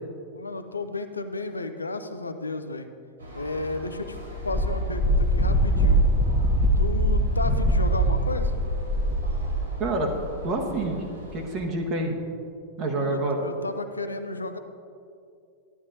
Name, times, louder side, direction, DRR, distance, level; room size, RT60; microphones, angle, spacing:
voice 1, 0.3-2.9 3.3-4.2 4.4-6.0 6.8-8.6 12.9-14.6, left 2 dB, 80° left, 9 dB, 0.5 m, -33 dB
sound 1, 3.2-11.6, left 1 dB, 80° right, 2.8 m, -40 dB
Wind, 4.4-9.7, right 1 dB, 15° left, 1.1 m, -22 dB
voice 2, 9.8-10.1 10.4-11.0 11.3-12.1 12.8-13.4, right 2 dB, 35° right, 1 dB, 1.2 m, -27 dB
13.0 x 11.0 x 2.7 m, 2.5 s
figure-of-eight pair, 90°, 0 cm